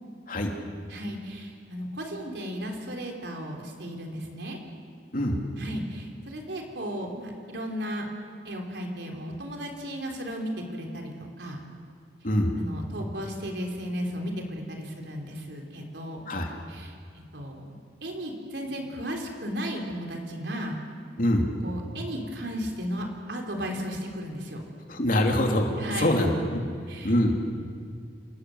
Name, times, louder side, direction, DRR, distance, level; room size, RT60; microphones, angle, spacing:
voice 1, 0.9-4.6 5.6-8.1 8.4-11.6 12.6-16.3 16.7-17.8 18.0-20.8 21.6-24.7 25.8-26.3 26.9-27.1, equal, 75° right, 2 dB, 3.7 m, -35 dB
voice 2, 21.2-21.5 24.9-26.6 27.0-27.3, left 1 dB, 50° left, 2 dB, 3.1 m, -24 dB
28.0 x 19.0 x 7.9 m, 2.2 s
head